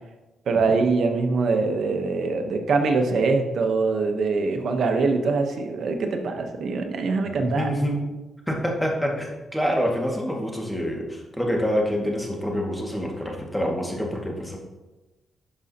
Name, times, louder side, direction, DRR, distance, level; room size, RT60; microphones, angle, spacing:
voice 1, 0.5-7.7, right 4 dB, 65° right, 5 dB, 1.0 m, -23 dB
voice 2, 7.4-8.0 8.5-14.6, equal, 5° left, -1 dB, 2.0 m, -26 dB
11.5 x 5.2 x 2.9 m, 1.1 s
cardioid pair, 70°, 0 cm